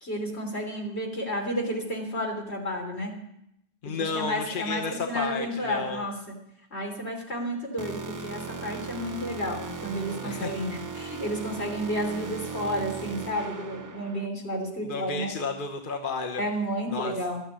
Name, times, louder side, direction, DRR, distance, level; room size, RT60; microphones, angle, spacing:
voice 1, 0.0-3.1 3.8-6.4 6.7-15.3 16.4-17.4, equal, 75° left, 0 dB, 3.6 m, -31 dB
voice 2, 3.8-6.1 10.2-10.6 14.8-16.4 16.9-17.2, left 4 dB, 55° left, 3 dB, 1.1 m, -32 dB
sound 1, 7.8-14.3, right 4 dB, 25° right, 0.4 m, -38 dB
13.0 x 9.3 x 8.2 m, 0.78 s
omnidirectional pair, 1.1 m